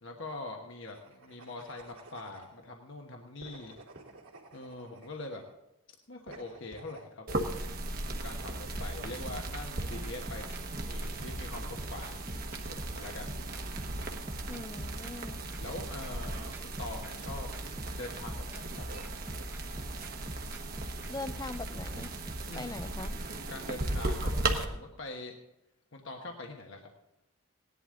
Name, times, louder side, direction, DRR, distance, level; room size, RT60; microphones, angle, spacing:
voice 1, 0.0-3.7 4.5-5.4 6.1-7.4 8.2-10.6 10.9-12.2 12.7-13.3 15.6-17.5 17.9-19.0 22.5-22.8 23.5-25.3 25.9-26.9, left 2 dB, 60° left, 2 dB, 1.2 m, -43 dB
sound 1, 0.8-2.5 3.4-5.5 6.3-7.1, right 2 dB, 75° right, 2.6 m, -53 dB
sound 2, 7.3-24.6, right 2 dB, 40° right, 1.1 m, -37 dB
sound 3, 8.8-23.1, equal, 10° right, 0.8 m, -44 dB
voice 2, 14.5-15.4 21.1-22.1 22.6-23.1, left 2 dB, 15° left, 14 dB, 0.4 m, -41 dB
18.0 x 11.0 x 3.8 m, 0.90 s
head